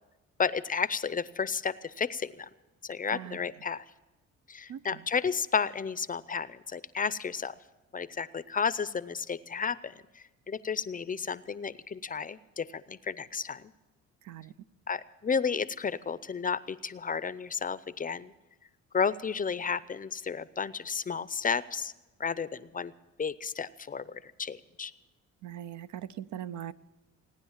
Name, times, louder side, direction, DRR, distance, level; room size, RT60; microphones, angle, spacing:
voice 1, 0.4-2.5 2.8-3.8 4.5-7.5 7.9-13.7 14.9-18.3 18.9-21.9 22.2-22.9 23.2-24.9, left 6 dB, 30° left, 17 dB, 0.5 m, -32 dB
voice 2, 4.7-5.0 14.2-14.5 25.4-26.7, right 10 dB, 70° right, 14 dB, 0.6 m, -40 dB
18.0 x 9.9 x 7.3 m, 1.1 s
cardioid pair, 90°, 30 cm